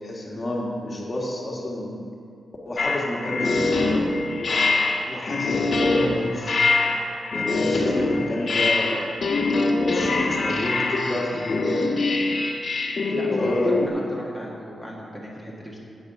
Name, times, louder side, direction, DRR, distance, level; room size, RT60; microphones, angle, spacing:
voice 1, 0.0-2.0 2.7-3.7 4.3-6.5 7.3-9.1 9.8-11.8 13.4-13.8, left 1 dB, 30° left, -3 dB, 1.7 m, -29 dB
sound 1, 2.8-13.9, left 3 dB, 50° left, 1.2 m, -23 dB
voice 2, 13.1-13.5 13.9-15.8, left 1 dB, 5° right, -4 dB, 1.5 m, -36 dB
12.0 x 8.2 x 5.3 m, 2.4 s
wide cardioid pair, 150°, 0 cm